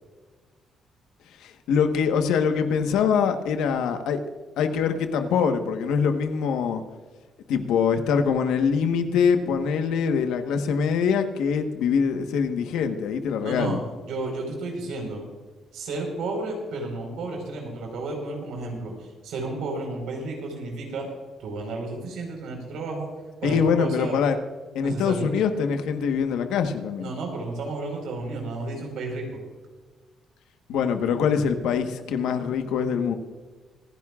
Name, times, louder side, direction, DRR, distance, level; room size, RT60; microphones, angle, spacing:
voice 1, 1.4-4.2 4.6-6.8 7.5-13.8 23.4-24.4 24.7-27.1 30.7-33.2, left 6 dB, 90° left, 7 dB, 1.2 m, -24 dB
voice 2, 13.4-13.8 14.0-15.2 15.7-21.1 21.4-23.1 23.4-24.2 24.8-25.3 27.0-29.4, right 2 dB, 80° right, 2 dB, 4.4 m, -32 dB
25.5 x 10.5 x 2.5 m, 1.4 s
cardioid pair, 90°, 0 cm